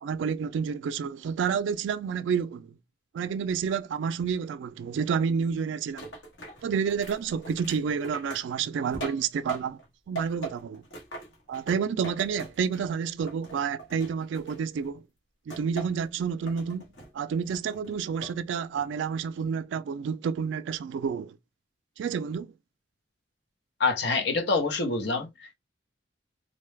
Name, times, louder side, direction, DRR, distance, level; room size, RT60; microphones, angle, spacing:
voice 1, 0.0-2.7 3.1-6.1 6.6-9.8 10.1-10.8 11.5-15.0 15.5-16.8 17.1-21.4 22.0-22.5, right 6 dB, 85° right, 0.3 m, -29 dB
sound 1, 6.0-9.9 10.2-12.9 13.3-14.9 15.5-16.1 16.5-17.1 17.5-18.4 18.8-19.2, right 2 dB, 90° left, 1.4 m, -41 dB
voice 2, 23.8-25.6, left 3 dB, 65° left, 0.8 m, -26 dB
3.9 x 2.2 x 3.1 m
head